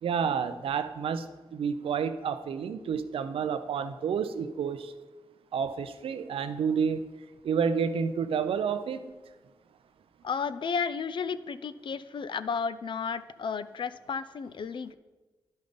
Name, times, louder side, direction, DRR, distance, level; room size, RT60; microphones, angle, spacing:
voice 1, 0.0-4.9 5.5-7.0 7.4-9.2, right 6 dB, 85° right, 11 dB, 0.5 m, -30 dB
voice 2, 10.2-14.9, left 6 dB, 60° left, 14 dB, 0.5 m, -33 dB
10.5 x 5.4 x 5.1 m, 1.2 s
cardioid pair, 65°, 9 cm